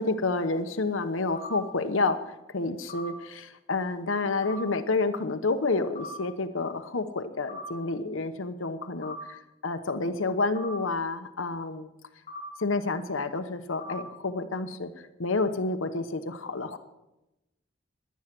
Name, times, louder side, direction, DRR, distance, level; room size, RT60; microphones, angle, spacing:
voice 1, 0.0-2.2 2.5-9.4 9.6-11.9 12.6-14.9 15.2-16.8, left 3 dB, 85° left, 9 dB, 1.0 m, -29 dB
sound 1, 1.4-1.5 2.9-3.0 4.4-4.6 6.0-6.1 7.5-7.6 9.0-9.2 10.6-10.7 12.3-12.4 13.8-14.0, left 4 dB, 35° left, 5.4 m, -39 dB
18.5 x 11.5 x 6.0 m, 0.95 s
head